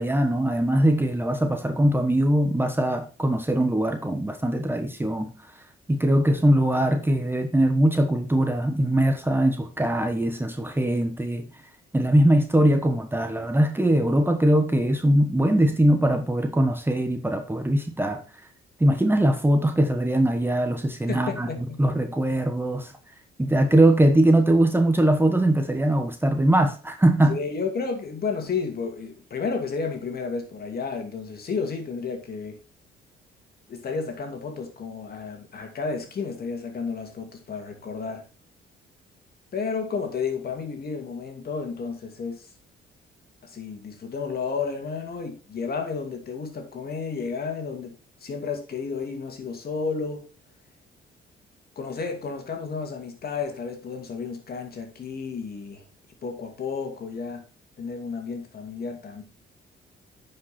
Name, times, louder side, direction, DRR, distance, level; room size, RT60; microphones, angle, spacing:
voice 1, 0.0-5.3 5.9-11.4 11.9-18.2 18.8-21.5 21.8-22.9 23.4-27.4, right 1 dB, 10° right, 1.2 m, -21 dB
voice 2, 21.1-21.8 27.2-32.6 33.7-38.2 39.5-42.5 43.4-47.9 48.2-50.2 51.8-55.9 56.2-57.4 57.8-59.2, left 5 dB, 50° left, 2.5 m, -32 dB
9.7 x 5.5 x 4.3 m
cardioid pair, 90°, 20 cm